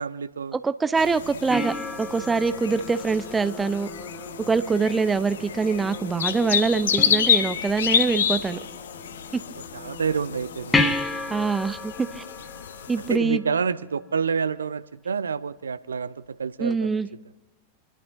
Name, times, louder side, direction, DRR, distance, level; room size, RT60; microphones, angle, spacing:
voice 1, 0.0-0.6 4.8-4.9 9.7-10.8 13.1-17.0, right 6 dB, 70° right, 0.5 m, -28 dB
voice 2, 0.5-3.9 4.5-8.6 9.3-9.4 11.3-12.2 12.9-13.4 16.6-17.1, right 4 dB, 15° right, 0.6 m, -24 dB
sound 1, 1.0-13.2, left 8 dB, 65° left, 0.7 m, -29 dB
sound 2, 1.2-10.8, left 2 dB, 35° left, 2.0 m, -44 dB
sound 3, 1.5-4.1 7.0-7.9 10.7-13.7 16.7-16.8, left 2 dB, 10° left, 1.2 m, -30 dB
27.0 x 11.5 x 2.7 m
figure-of-eight pair, 90°, 0 cm